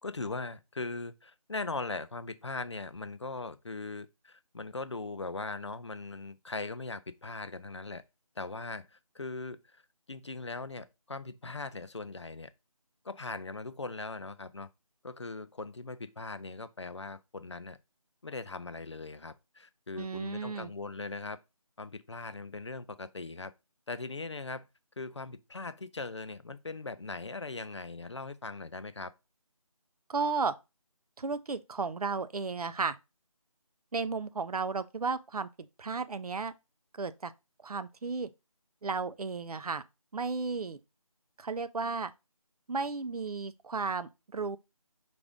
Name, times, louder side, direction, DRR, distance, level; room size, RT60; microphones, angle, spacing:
voice 1, 0.0-8.0 8.4-9.8 10.1-12.5 13.0-14.7 15.0-17.8 18.2-21.4 21.8-23.5 23.9-24.7 25.0-29.1, left 3 dB, 50° left, 0.4 m, -40 dB
voice 2, 20.0-20.7 30.1-30.5 31.2-33.0 33.9-35.5 35.8-36.5 37.0-37.3 37.6-38.3 38.8-39.8 40.1-40.8 41.4-42.1 42.7-44.6, right 4 dB, 80° right, 0.5 m, -33 dB
4.9 x 2.6 x 3.4 m
figure-of-eight pair, 175°, 19 cm